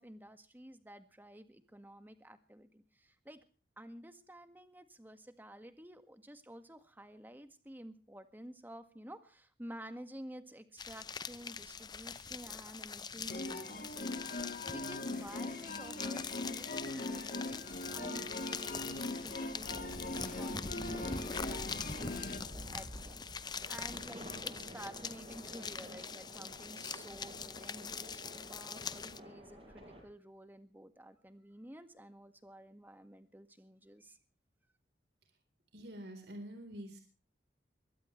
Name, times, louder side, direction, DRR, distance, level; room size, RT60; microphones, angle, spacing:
voice 1, 0.0-3.4 3.8-17.6 17.9-34.2, right 1 dB, 10° right, 9 dB, 1.8 m, -52 dB
sound 1, 10.8-29.2, left 5 dB, 25° left, 0.7 m, -43 dB
sound 2, 13.3-22.4, left 2 dB, 50° left, 3.2 m, -41 dB
sound 3, 16.8-30.0, equal, 35° right, 7.9 m, -52 dB
voice 2, 35.7-37.0, equal, 70° right, 5 dB, 4.1 m, -46 dB
22.5 x 17.0 x 3.3 m, 0.38 s
head